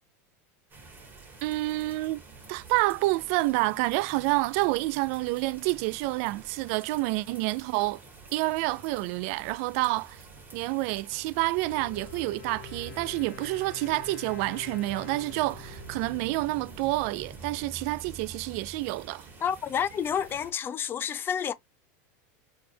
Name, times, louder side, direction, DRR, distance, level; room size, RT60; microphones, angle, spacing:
sound 1, 0.7-20.5, right 4 dB, 20° right, 2.4 m, -47 dB
voice 1, 1.4-2.2 2.5-8.0 8.3-10.2 10.5-19.3, right 20 dB, 60° right, 0.3 m, -28 dB
Wind instrument woodwind instrument, 11.5-17.3, left 11 dB, 75° left, 1.7 m, -47 dB
voice 2, 19.4-21.5, left 8 dB, 25° left, 0.6 m, -29 dB
4.3 x 3.4 x 2.7 m
supercardioid pair, 130°, 9 cm